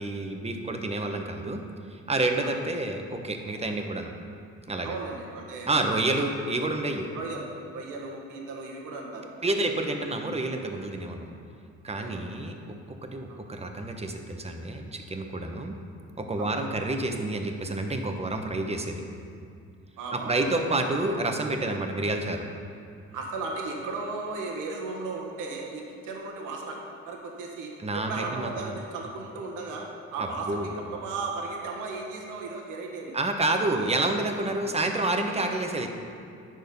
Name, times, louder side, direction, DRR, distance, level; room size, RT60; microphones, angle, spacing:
voice 1, 0.0-4.1 4.7-4.9 5.7-7.1 9.4-11.3 11.8-12.8 13.0-15.8 16.2-19.0 20.1-22.5 27.8-28.8 30.2-30.7 33.1-35.9, right 2 dB, 20° right, 4 dB, 1.0 m, -29 dB
voice 2, 4.8-5.9 7.1-9.3 11.9-12.2 13.3-13.5 16.4-16.6 20.0-20.5 23.1-26.8 27.0-33.2 34.6-34.7, right 3 dB, 90° right, 0 dB, 1.4 m, -36 dB
10.0 x 6.4 x 5.3 m, 2.4 s
cardioid pair, 90°, 30 cm